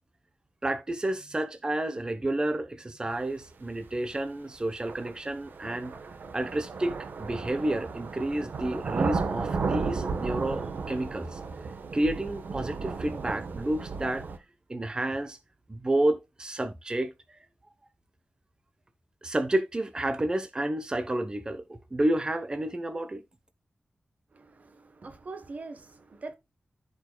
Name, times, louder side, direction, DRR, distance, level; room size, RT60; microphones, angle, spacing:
voice 1, 0.6-5.9 6.3-11.4 11.9-14.2 14.7-15.4 15.7-17.4 19.2-23.2, right 1 dB, 25° right, 0.9 m, -30 dB
sound 1, 3.8-3.9 4.9-14.4, right 4 dB, 80° right, 1.1 m, -34 dB
voice 2, 24.3-26.3, right 3 dB, 50° right, 1.1 m, -43 dB
14.5 x 5.4 x 2.3 m
wide cardioid pair, 85°, 3 cm